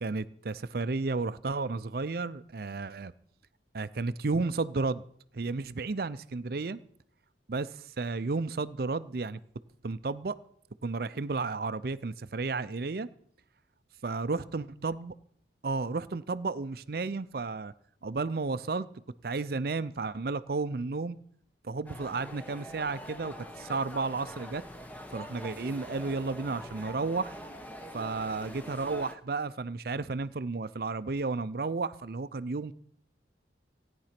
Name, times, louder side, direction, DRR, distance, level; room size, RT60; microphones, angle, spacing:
voice 1, 0.0-3.1 3.7-5.0 5.3-6.8 7.5-9.4 9.8-10.4 10.8-13.1 14.0-15.1 15.6-17.7 18.0-18.9 19.2-21.2 21.6-24.6 25.1-27.3 27.9-32.7, right 3 dB, 55° right, 14 dB, 0.5 m, -32 dB
sound 1, 21.9-29.2, equal, 10° left, 0.9 m, -44 dB
16.5 x 9.7 x 5.9 m, 0.64 s
head